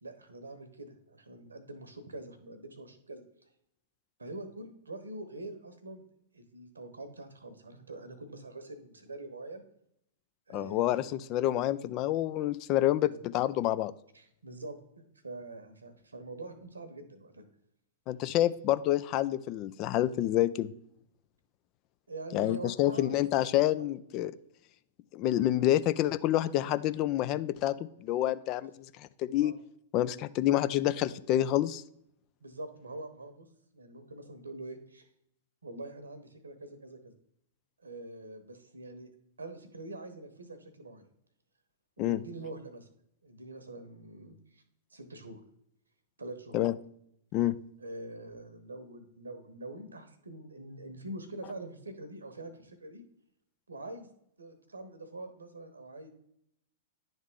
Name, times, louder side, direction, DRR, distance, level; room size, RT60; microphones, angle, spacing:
voice 1, 0.0-3.2 4.2-6.0 6.3-9.6 10.5-11.0 13.0-13.2 14.1-17.4 22.1-23.1 23.8-23.9 28.6-28.7 29.4-29.6 32.4-33.5 33.7-35.1 35.6-37.1 37.8-39.1 39.4-41.1 42.0-42.9 43.2-44.6 44.9-45.4 46.2-46.7 47.8-53.0 53.7-54.1 54.4-56.1, right 2 dB, 80° right, 9 dB, 1.1 m, -45 dB
voice 2, 10.5-13.9 18.1-20.7 22.3-24.3 25.1-28.7 29.0-29.5 29.9-31.8 42.0-42.2 46.5-46.7 47.3-47.6, left 13 dB, 40° left, 14 dB, 0.3 m, -28 dB
10.5 x 3.6 x 3.6 m, 0.74 s
figure-of-eight pair, 105°, 0 cm